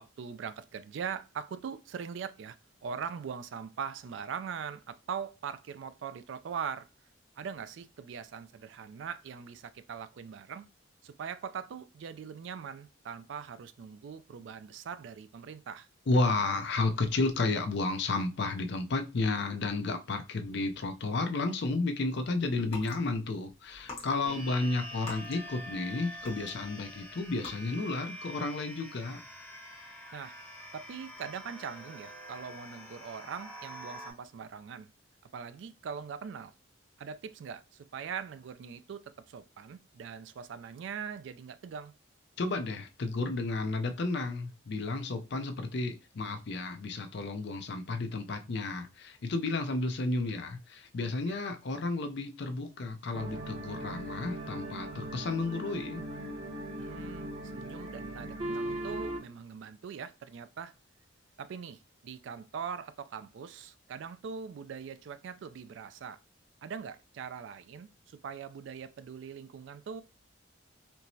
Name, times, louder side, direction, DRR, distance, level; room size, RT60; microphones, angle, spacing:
voice 1, 0.0-2.6 2.8-6.9 7.4-10.7 11.0-15.9 24.3-24.4 30.1-30.3 30.7-34.9 35.3-36.5 37.0-41.9 51.2-51.4 56.8-60.7 61.4-66.2 66.6-70.0, right 7 dB, 65° right, 0.3 m, -41 dB
voice 2, 16.1-29.2 42.4-56.0, left 3 dB, 55° left, 0.5 m, -32 dB
sound 1, 22.7-23.0 23.7-25.9 26.2-26.8 27.3-27.5, left 3 dB, 30° left, 1.0 m, -45 dB
sound 2, 24.2-34.1, equal, 10° left, 0.7 m, -46 dB
sound 3, 53.1-59.2, right 1 dB, 30° right, 0.7 m, -39 dB
4.4 x 2.0 x 2.6 m
head